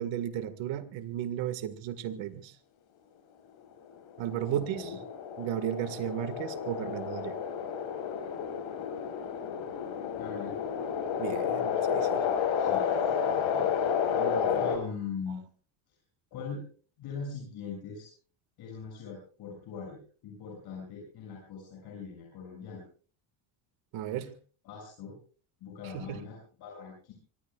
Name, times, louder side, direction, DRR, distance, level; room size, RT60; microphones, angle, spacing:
voice 1, 0.0-2.5 4.2-4.9 5.4-7.4 11.2-12.2 14.1-14.6 23.9-24.3 25.9-26.2, right 11 dB, 75° right, 10 dB, 2.0 m, -34 dB
sound 1, 3.9-14.8, left 7 dB, 75° left, 6.1 m, -31 dB
voice 2, 4.5-5.0 10.2-10.6 12.5-15.4 16.3-16.6 17.0-18.1 18.6-22.8 24.6-25.2 25.6-27.1, left 5 dB, 55° left, -2 dB, 7.3 m, -41 dB
25.5 x 23.0 x 2.4 m, 0.41 s
cardioid pair, 180°, 47 cm